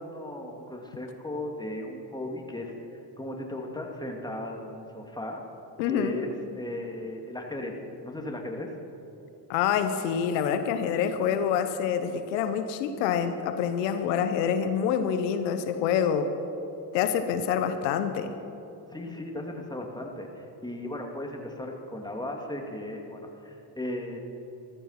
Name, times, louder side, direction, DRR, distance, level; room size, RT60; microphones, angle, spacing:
voice 1, 0.0-5.4 5.9-8.7 18.9-24.2, left 1 dB, 10° left, 1 dB, 2.7 m, -36 dB
voice 2, 5.8-6.2 9.5-16.3 16.9-18.3, left 8 dB, 90° left, 9 dB, 0.9 m, -26 dB
14.5 x 14.0 x 5.9 m, 2.9 s
hypercardioid pair, 60°, 48 cm